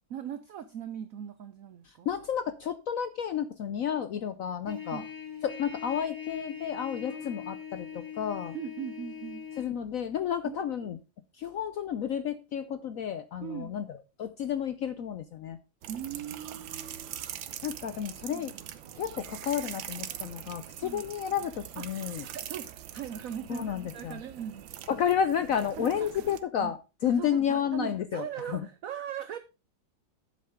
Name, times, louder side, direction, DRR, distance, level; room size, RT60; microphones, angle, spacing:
voice 1, 0.1-2.1 4.9-5.1 7.0-7.5 8.5-9.5 10.4-11.0 13.4-13.7 15.9-17.3 18.2-18.6 20.8-21.0 21.8-24.8 25.8-26.2 26.6-26.8 27.0-29.4, right 9 dB, 65° right, 11 dB, 0.9 m, -40 dB
voice 2, 2.1-5.0 5.4-8.6 9.6-11.0 11.3-13.9 14.2-15.6 17.6-18.5 19.0-22.2 23.5-24.2 24.9-26.8 27.0-28.2 28.5-28.6, left 8 dB, 70° left, 12 dB, 0.8 m, -31 dB
Trumpet, 4.6-9.7, left 8 dB, 10° left, 1.9 m, -41 dB
sound 1, 15.8-26.4, right 11 dB, 90° right, 1.5 m, -43 dB
10.5 x 7.6 x 3.6 m, 0.29 s
omnidirectional pair, 2.0 m